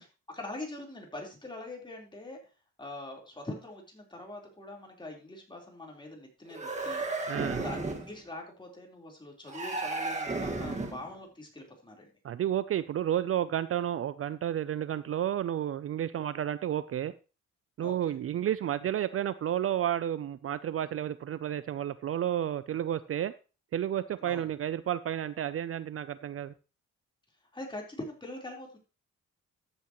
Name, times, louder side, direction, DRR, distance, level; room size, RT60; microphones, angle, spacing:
voice 1, 0.0-2.4 2.8-7.0 7.6-12.1 17.8-18.1 24.2-24.5 27.5-28.8, left 2 dB, 15° left, 0 dB, 4.0 m, -43 dB
sound 1, 6.5-8.1 9.5-11.1, right 3 dB, 25° right, 1.8 m, -34 dB
voice 2, 7.3-7.6 12.2-17.1 17.8-23.3 23.7-26.5, right 11 dB, 50° right, 15 dB, 0.5 m, -31 dB
14.0 x 8.1 x 3.1 m, 0.33 s
cardioid pair, 90°, 30 cm